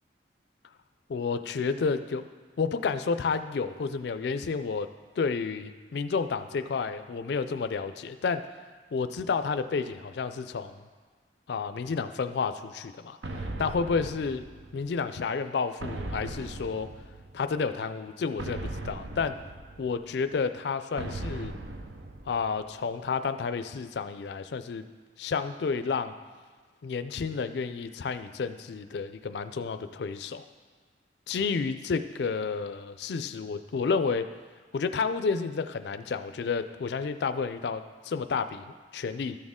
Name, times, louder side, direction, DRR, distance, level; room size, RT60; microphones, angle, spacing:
voice 1, 1.1-2.2 2.6-4.9 5.2-8.4 8.9-10.8 11.5-14.4 14.7-16.9 17.3-19.4 19.8-21.5 22.3-24.9 25.2-26.1 26.8-30.4 31.3-34.3 34.7-39.4, left 5 dB, 65° left, 10 dB, 0.4 m, -30 dB
sound 1, 13.2-15.0 15.8-17.5 18.4-20.2 21.0-22.8, right 2 dB, 85° right, 0.7 m, -38 dB
13.5 x 6.3 x 3.6 m, 1.5 s
head